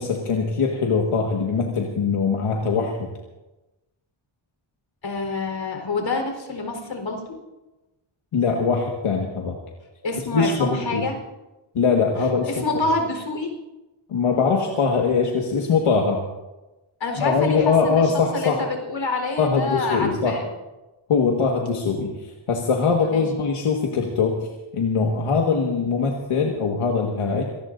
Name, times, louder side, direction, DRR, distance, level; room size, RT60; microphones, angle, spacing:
voice 1, 0.0-3.1 8.3-9.6 10.3-11.1 11.7-12.6 14.1-16.2 17.2-18.6 19.4-20.4 21.1-27.4, left 5 dB, 85° left, 0 dB, 1.8 m, -22 dB
voice 2, 5.0-7.3 10.0-11.2 12.4-13.5 17.0-20.5 23.1-23.2, left 3 dB, 65° left, 3 dB, 4.4 m, -27 dB
26.0 x 19.0 x 2.7 m, 1.0 s
wide cardioid pair, 105°, 50 cm